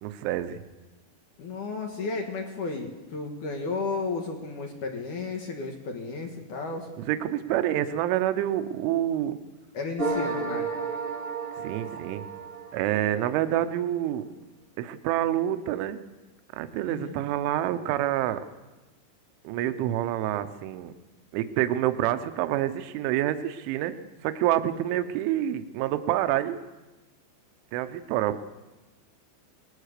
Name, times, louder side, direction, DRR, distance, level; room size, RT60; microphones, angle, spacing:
voice 1, 0.0-0.6 7.0-9.4 11.6-12.2 12.7-14.2 14.8-16.0 16.5-18.4 19.4-20.9 21.3-24.0 24.2-26.6 27.7-28.4, right 12 dB, 75° right, 10 dB, 3.2 m, -27 dB
voice 2, 1.4-6.9 9.7-10.7 16.8-17.2, left 4 dB, 60° left, 3 dB, 2.2 m, -33 dB
sound 1, 10.0-13.4, right 4 dB, 30° right, 1.0 m, -32 dB
25.5 x 19.5 x 6.7 m, 1.1 s
omnidirectional pair, 6.0 m